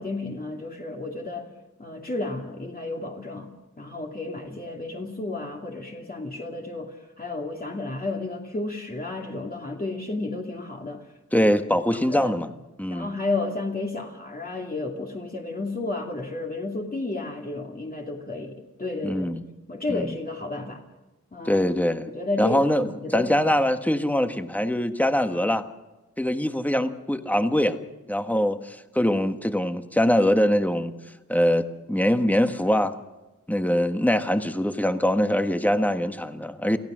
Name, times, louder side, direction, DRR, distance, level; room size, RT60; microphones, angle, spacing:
voice 1, 0.0-1.5 1.8-3.5 3.8-11.1 11.3-11.4 11.9-12.3 12.9-19.3 19.7-20.8 21.3-21.6 22.1-23.5, left 2 dB, 30° left, 0 dB, 2.5 m, -32 dB
voice 2, 11.3-12.5 12.8-13.1 19.0-19.4 19.9-20.1 21.4-22.1 22.4-22.8 23.1-25.6 26.2-27.8 28.1-30.9 31.3-32.9 33.5-36.8, equal, 5° left, 8 dB, 1.5 m, -23 dB
29.0 x 15.5 x 6.3 m, 1.1 s
wide cardioid pair, 100°, 30 cm